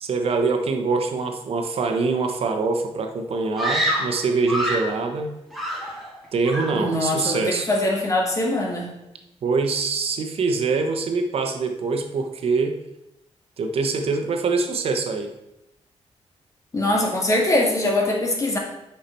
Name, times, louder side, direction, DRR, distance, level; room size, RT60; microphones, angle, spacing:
voice 1, 0.0-5.3 6.3-7.7 9.4-12.8 13.6-15.3, right 4 dB, 65° right, 5 dB, 1.0 m, -24 dB
Screaming, 3.6-5.0 5.5-6.2 6.4-6.9, equal, ahead, 2.5 m, -26 dB
voice 2, 6.7-8.9 16.7-18.6, left 1 dB, 30° left, 0 dB, 1.9 m, -22 dB
8.5 x 5.7 x 4.4 m, 0.89 s
wide cardioid pair, 125°, 11 cm